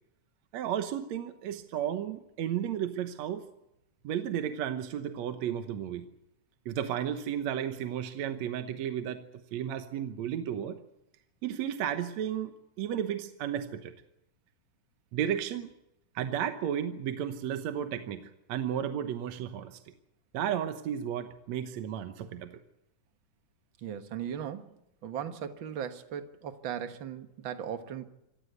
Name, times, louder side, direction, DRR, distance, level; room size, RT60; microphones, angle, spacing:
voice 1, 0.5-3.5 4.0-6.1 6.7-9.2 9.5-10.8 11.4-13.9 15.1-15.7 16.2-19.8 20.3-22.5, right 9 dB, 65° right, 8 dB, 2.1 m, -33 dB
voice 2, 23.8-24.8 25.0-28.0, right 8 dB, 50° right, 8 dB, 1.6 m, -37 dB
26.0 x 15.5 x 8.1 m, 0.84 s
omnidirectional pair, 3.7 m